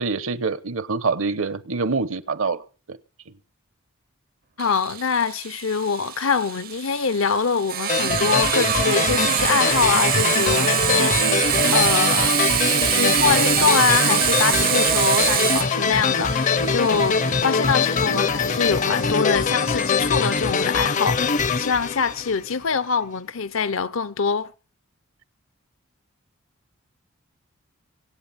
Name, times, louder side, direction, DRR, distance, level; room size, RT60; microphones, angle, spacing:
voice 1, 0.0-2.6 2.9-3.0, right 4 dB, 70° right, 0.9 m, -25 dB
voice 2, 4.6-24.5, left 5 dB, 75° left, 0.8 m, -24 dB
Sawing, 4.6-20.0, right 11 dB, 45° right, 0.6 m, -24 dB
sound 1, 7.9-22.7, left 5 dB, 35° left, 0.6 m, -23 dB
24.5 x 8.6 x 4.2 m
head